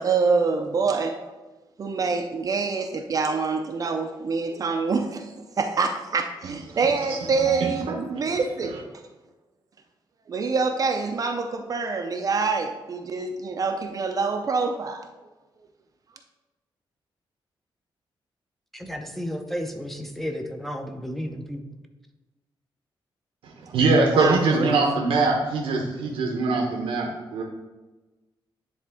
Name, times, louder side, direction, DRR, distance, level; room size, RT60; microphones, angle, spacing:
voice 1, 0.0-1.3 1.8-8.8 10.3-15.1 23.7-23.8 24.1-24.9, right 4 dB, 40° right, 4 dB, 0.5 m, -26 dB
voice 2, 7.5-7.8 23.7-27.4, right 3 dB, 90° right, 0 dB, 0.9 m, -22 dB
voice 3, 18.7-21.6, equal, ahead, 5 dB, 0.6 m, -32 dB
10.0 x 3.5 x 3.5 m, 1.2 s
wide cardioid pair, 135°, 9 cm